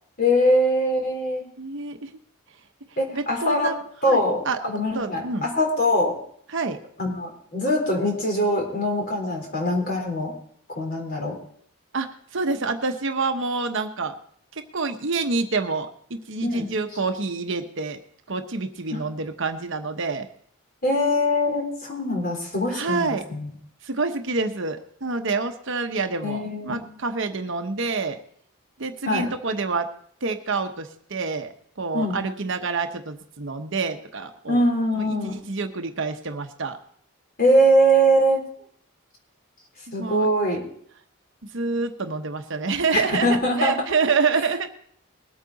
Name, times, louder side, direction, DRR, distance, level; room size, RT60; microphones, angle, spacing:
voice 1, 0.2-1.5 3.0-3.7 4.0-6.2 7.0-10.3 10.7-11.4 16.4-16.7 18.9-19.0 20.8-23.5 26.2-26.8 29.1-29.3 31.9-32.2 34.5-35.3 37.4-38.4 39.9-40.6 42.9-43.7, equal, 45° left, 1 dB, 3.8 m, -22 dB
voice 2, 1.6-2.1 3.1-3.8 4.1-4.6 4.9-5.5 6.5-6.8 11.9-14.2 14.5-18.0 18.3-20.3 22.7-23.3 23.8-28.2 28.8-29.9 30.2-34.6 35.0-36.8 40.0-40.3 41.5-44.8, right 4 dB, 60° right, 6 dB, 1.0 m, -27 dB
20.5 x 8.6 x 4.0 m, 0.62 s
head